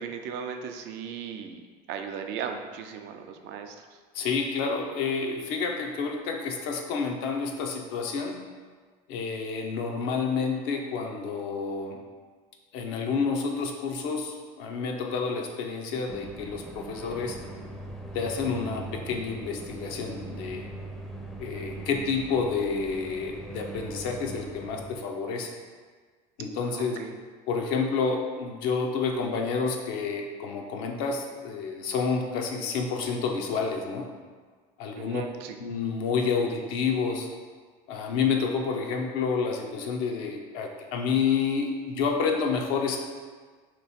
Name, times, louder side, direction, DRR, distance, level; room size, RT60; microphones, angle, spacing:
voice 1, 0.0-1.6 1.9-3.8 21.5-21.9 26.6-27.1 35.0-35.6, right 7 dB, 60° right, 5 dB, 0.5 m, -37 dB
voice 2, 4.1-8.4 9.1-12.0 12.7-17.4 18.1-20.7 21.4-25.5 26.4-27.0 27.5-34.1 34.8-35.2 35.6-37.3 37.9-43.0, left 5 dB, 70° left, 2 dB, 0.6 m, -29 dB
sound 1, 16.1-25.0, right 2 dB, ahead, 0.5 m, -41 dB
3.0 x 3.0 x 4.2 m, 1.5 s
hypercardioid pair, 85°, 20 cm